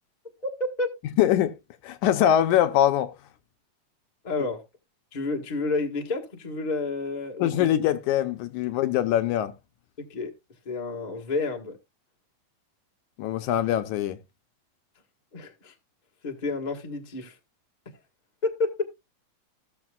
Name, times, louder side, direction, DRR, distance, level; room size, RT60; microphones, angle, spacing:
voice 1, 0.4-1.0 4.2-4.6 5.1-7.7 10.0-10.3 10.6-11.8 15.3-15.7 16.2-17.3 18.4-18.8, left 3 dB, 45° left, 0.5 m, -30 dB
voice 2, 1.2-1.5 1.8-3.1 7.4-9.5 13.2-14.2, left 11 dB, 75° left, 2.0 m, -23 dB
16.5 x 6.8 x 2.3 m
omnidirectional pair, 3.8 m